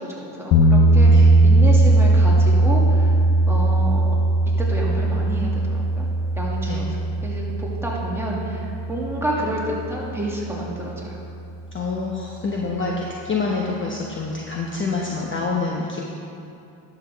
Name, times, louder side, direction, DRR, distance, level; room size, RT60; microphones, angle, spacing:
voice 1, 0.0-3.2 3.5-4.2 4.6-6.1 6.4-11.2, right 1 dB, 5° right, -5 dB, 2.2 m, -29 dB
sound 1, 0.5-10.5, right 2 dB, 50° left, 1.0 m, -18 dB
voice 2, 11.7-16.0, left 4 dB, 25° left, -2 dB, 1.0 m, -26 dB
11.5 x 7.0 x 3.5 m, 2.6 s
supercardioid pair, 80°, 48 cm